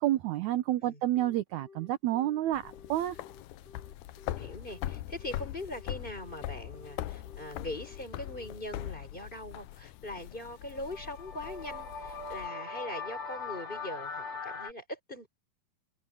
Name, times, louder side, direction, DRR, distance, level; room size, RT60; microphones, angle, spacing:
voice 1, 0.0-2.6 2.9-3.2, right 14 dB, 75° right, 1.8 m, -29 dB
Telephone, 1.1-8.6, left 5 dB, 40° right, 5.6 m, -54 dB
sound 1, 2.5-12.5, left 14 dB, 80° left, 1.8 m, -41 dB
voice 2, 4.2-15.3, left 1 dB, 15° left, 4.9 m, -41 dB
sound 2, 10.5-14.7, left 4 dB, 60° left, 4.4 m, -40 dB
omnidirectional pair, 4.3 m